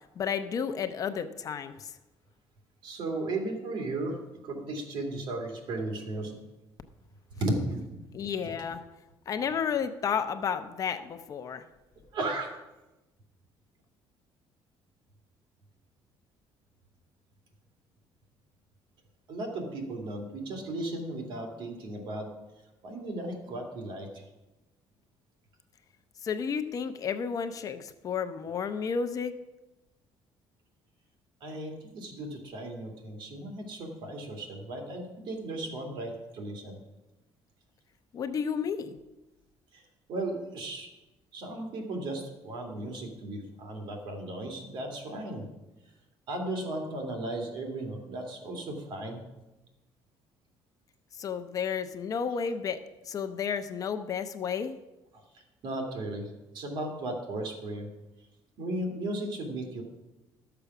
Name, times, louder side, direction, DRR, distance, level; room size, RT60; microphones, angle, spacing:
voice 1, 0.2-1.9 8.1-8.8 9.3-11.6 26.2-29.3 38.1-39.0 51.1-54.7, left 6 dB, 40° left, 9 dB, 0.7 m, -32 dB
voice 2, 2.8-4.2 4.4-6.4 7.3-7.9 12.1-12.6 19.3-22.3 22.8-24.2 31.4-36.8 39.7-39.8 40.1-40.9 41.3-45.4 46.3-49.2 55.6-56.3 56.5-57.9 58.6-59.8, right 2 dB, 60° right, 2 dB, 2.5 m, -35 dB
12.5 x 6.9 x 5.9 m, 1.0 s
cardioid pair, 140°, 9 cm